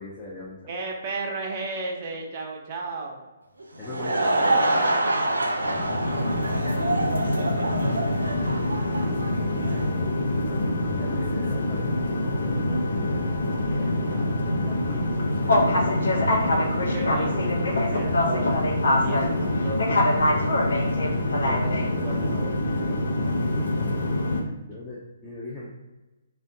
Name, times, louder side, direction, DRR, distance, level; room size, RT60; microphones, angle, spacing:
voice 1, 0.0-0.7 3.8-4.6 10.4-13.3 23.3-23.5 24.7-25.8, left 2 dB, 15° left, -7 dB, 0.6 m, -40 dB
voice 2, 0.7-3.3 4.2-6.5 8.9-10.0 13.7-19.9 21.4-22.6, right 3 dB, 35° right, 0 dB, 0.6 m, -36 dB
Laughter / Crowd, 3.6-9.9, right 1 dB, 80° right, 0.4 m, -26 dB
sound 1, 5.6-24.4, left 1 dB, 70° left, 0.6 m, -24 dB
3.4 x 2.2 x 2.6 m, 1.1 s
figure-of-eight pair, 135°, 0 cm